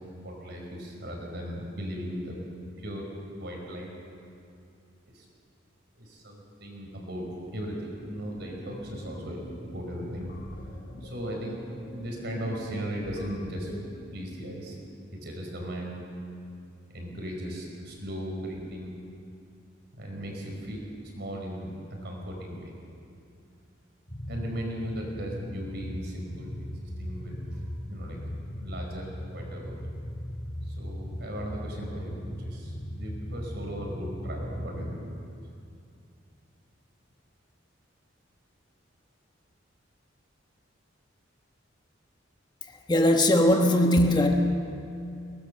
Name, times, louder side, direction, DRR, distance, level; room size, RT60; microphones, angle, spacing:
voice 1, 0.2-2.4 2.8-3.1 3.4-3.9 5.1-5.3 6.0-7.3 7.5-10.3 11.0-11.6 11.9-13.8 14.1-14.8 15.2-16.0 16.9-19.0 19.9-20.9 21.2-22.7 24.3-28.2 28.5-29.8 30.7-35.1, equal, 55° right, 0 dB, 5.3 m, -37 dB
sound 1, 7.6-14.7, equal, 50° left, 3.2 m, -45 dB
sound 2, 24.1-35.0, equal, 35° left, 2.1 m, -38 dB
voice 2, 42.6-44.3, left 1 dB, 20° left, 3 dB, 1.2 m, -21 dB
23.0 x 19.5 x 6.8 m, 2.5 s
head